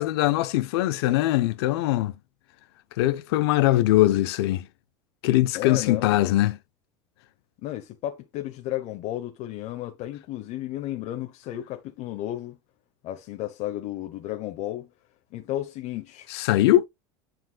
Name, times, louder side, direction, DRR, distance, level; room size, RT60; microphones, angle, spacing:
voice 1, 0.0-2.1 3.0-4.7 5.2-6.6 16.3-16.9, left 15 dB, 80° left, 0.9 m, -21 dB
voice 2, 5.5-6.2 7.6-12.6 13.0-14.9 15.3-16.3, left 14 dB, 60° left, 1.0 m, -33 dB
9.6 x 4.4 x 2.3 m
supercardioid pair, 110°, 13 cm